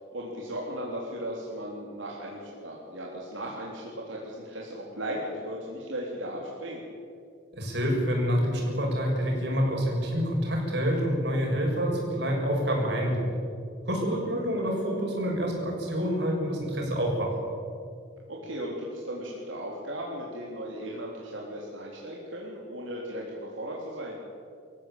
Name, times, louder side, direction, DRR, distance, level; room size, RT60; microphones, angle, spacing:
voice 1, 0.1-6.8 14.1-14.3 18.3-24.2, equal, 80° right, -3 dB, 3.7 m, -36 dB
voice 2, 7.5-13.3 13.9-17.3, equal, 60° right, -1 dB, 7.0 m, -27 dB
25.0 x 15.5 x 8.9 m, 2.3 s
head